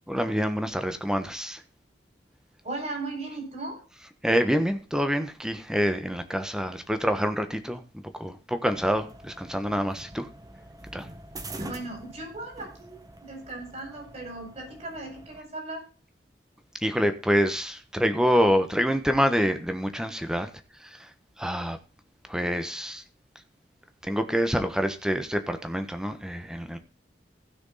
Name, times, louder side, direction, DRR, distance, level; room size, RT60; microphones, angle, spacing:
voice 1, 0.1-1.6 4.2-7.8 8.1-10.3 10.9-11.1 16.8-20.5 20.8-21.1 21.4-21.8 22.3-23.0 24.0-26.8, equal, 5° right, 1.3 m, -26 dB
voice 2, 2.6-3.8 11.6-15.8, right 2 dB, 40° right, 5.8 m, -37 dB
sound 1, 8.6-15.4, right 1 dB, 20° right, 1.4 m, -44 dB
16.0 x 6.3 x 4.1 m
head